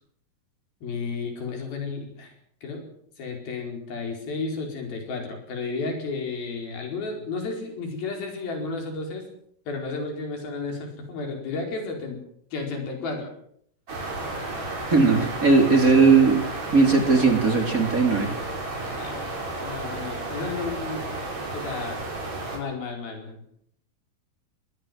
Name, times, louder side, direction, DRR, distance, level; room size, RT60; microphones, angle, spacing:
voice 1, 0.8-2.3 2.6-2.8 3.2-9.3 9.7-12.2 12.5-13.3 18.9-19.2 19.6-21.1 21.5-22.0 22.5-23.4, left 4 dB, 90° left, 3 dB, 6.6 m, -32 dB
sound 1, 13.9-22.6, right 2 dB, 50° right, 6.0 m, -32 dB
voice 2, 14.9-16.4 16.7-18.3, right 4 dB, 25° right, 4 dB, 3.3 m, -18 dB
22.0 x 18.0 x 7.6 m, 0.69 s
omnidirectional pair, 4.1 m